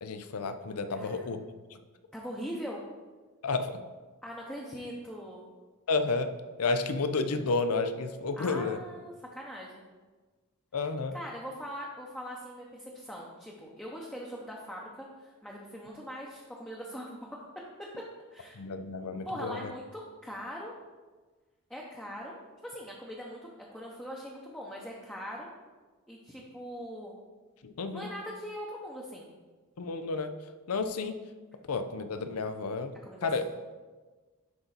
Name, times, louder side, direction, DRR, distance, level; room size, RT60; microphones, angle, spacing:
voice 1, 0.0-1.5 3.4-3.8 5.9-6.3 6.6-8.8 10.7-11.1 18.6-19.7 27.6-28.1 29.8-30.3 30.7-31.2 31.7-32.9 33.2-33.4, left 3 dB, 80° left, 9 dB, 0.6 m, -31 dB
voice 2, 0.9-1.3 2.1-2.8 4.2-5.4 8.4-9.8 11.1-17.4 17.8-17.9 18.3-18.6 19.2-20.7 21.7-25.5 26.1-27.2 27.9-29.3 33.0-33.4, equal, 5° left, -3 dB, 0.7 m, -41 dB
10.5 x 3.9 x 4.0 m, 1.3 s
head